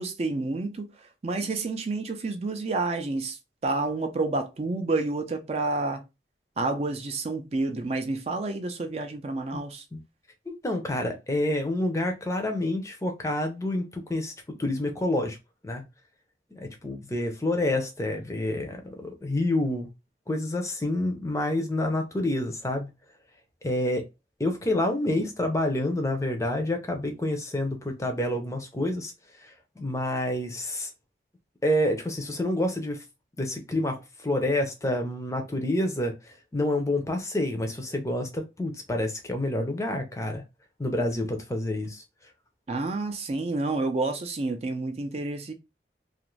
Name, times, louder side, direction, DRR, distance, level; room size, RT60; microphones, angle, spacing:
voice 1, 0.0-3.4 3.6-6.0 6.6-9.8 42.7-45.5, right 3 dB, 35° right, 0.4 m, -29 dB
voice 2, 10.5-14.3 14.6-15.4 15.6-15.8 16.5-19.9 20.3-22.9 23.6-24.0 24.4-29.1 29.4-30.9 31.6-33.0 33.4-36.1 36.5-40.4 40.8-42.0, left 1 dB, 15° left, 0.5 m, -28 dB
2.5 x 2.4 x 3.1 m
head